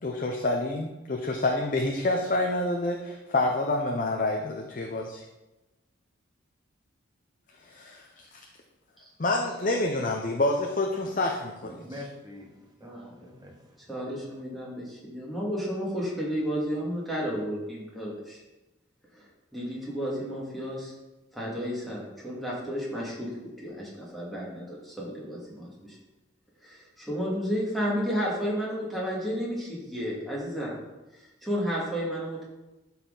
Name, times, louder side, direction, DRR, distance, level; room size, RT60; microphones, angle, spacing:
voice 1, 0.0-5.2 7.6-8.0 8.3-8.4 9.2-11.8, left 2 dB, 45° left, 1 dB, 0.7 m, -28 dB
voice 2, 11.8-13.8, left 1 dB, 20° right, 0 dB, 1.2 m, -45 dB
voice 3, 12.8-13.3 13.8-18.4 19.1-20.9 21.3-23.3 23.6-26.0 26.6-30.7 31.2-32.4, equal, ahead, -6 dB, 2.2 m, -32 dB
12.5 x 4.3 x 3.9 m, 1.1 s
head